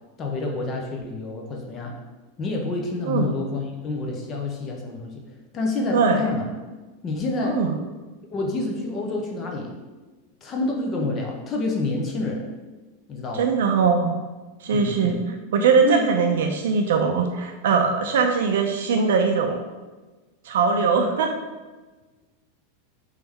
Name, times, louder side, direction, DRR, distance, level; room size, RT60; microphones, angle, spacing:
voice 1, 0.2-2.0 2.4-5.2 5.5-6.5 7.0-7.7 8.3-9.7 10.4-12.5 13.1-13.6 14.7-15.2 15.8-16.0, left 2 dB, 20° left, 0 dB, 0.4 m, -28 dB
voice 2, 13.3-14.2 14.6-15.1 15.5-19.6 20.4-21.3, right 5 dB, 75° right, 3 dB, 0.4 m, -21 dB
3.3 x 3.0 x 3.5 m, 1.3 s
supercardioid pair, 175°, 0 cm